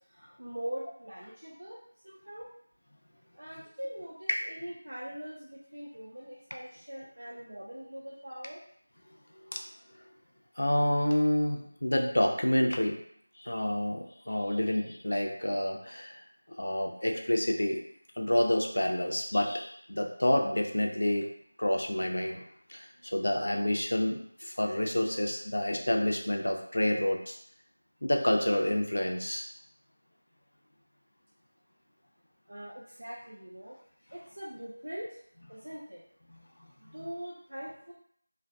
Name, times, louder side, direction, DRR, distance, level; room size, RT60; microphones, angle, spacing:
voice 1, 0.1-1.8 2.0-2.5 3.4-8.6 32.5-33.8 34.1-35.2 35.5-36.0 36.8-37.9, equal, 85° right, -5 dB, 0.5 m, -42 dB
voice 2, 10.6-13.0 13.4-16.2 16.6-17.8 18.2-21.3 21.6-22.4 22.7-27.4 28.0-29.5, left 1 dB, 80° left, 2 dB, 0.5 m, -28 dB
2.5 x 2.2 x 2.2 m, 0.65 s
figure-of-eight pair, 175°, 0 cm